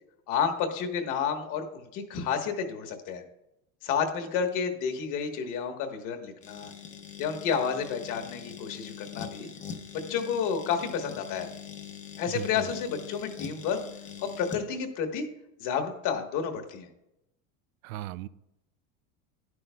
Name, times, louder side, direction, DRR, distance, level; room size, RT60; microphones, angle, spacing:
voice 1, 0.3-3.2 3.8-6.7 7.2-9.5 9.9-11.5 12.2-13.8 14.4-15.3 15.6-16.9, left 7 dB, 45° left, 5 dB, 1.3 m, -30 dB
sound 1, 6.4-14.7, left 7 dB, 20° left, 0.7 m, -43 dB
voice 2, 12.3-12.6 17.8-18.3, right 14 dB, 75° right, 17 dB, 0.5 m, -37 dB
10.5 x 9.6 x 2.3 m, 0.87 s
supercardioid pair, 135°, 43 cm